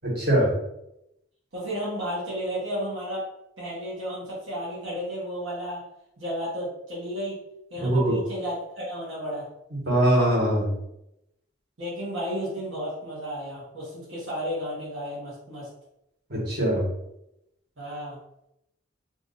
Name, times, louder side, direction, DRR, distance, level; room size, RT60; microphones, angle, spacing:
voice 1, 0.0-0.5 7.8-8.2 9.7-10.7 16.3-16.8, right 1 dB, 55° right, -5 dB, 1.3 m, -22 dB
voice 2, 1.5-3.3 3.6-5.8 6.2-7.4 7.7-9.5 11.8-15.7 17.8-18.2, equal, 80° right, -8 dB, 1.1 m, -33 dB
2.7 x 2.5 x 3.8 m, 0.83 s
head